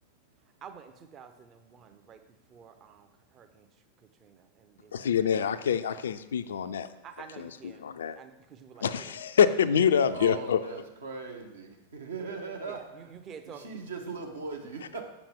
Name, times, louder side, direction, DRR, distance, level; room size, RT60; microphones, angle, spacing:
voice 1, 0.6-2.2 2.5-3.7 4.0-5.2 7.0-7.8 8.1-9.1 12.6-13.7, right 7 dB, 30° right, 8 dB, 0.6 m, -49 dB
voice 2, 4.9-6.9 7.4-8.2 8.8-10.6, left 8 dB, 65° left, 12 dB, 0.3 m, -26 dB
voice 3, 10.1-13.1 13.5-15.0, right 4 dB, 70° right, 2 dB, 1.1 m, -39 dB
7.2 x 7.1 x 3.5 m, 1.0 s
figure-of-eight pair, 90°, 0 cm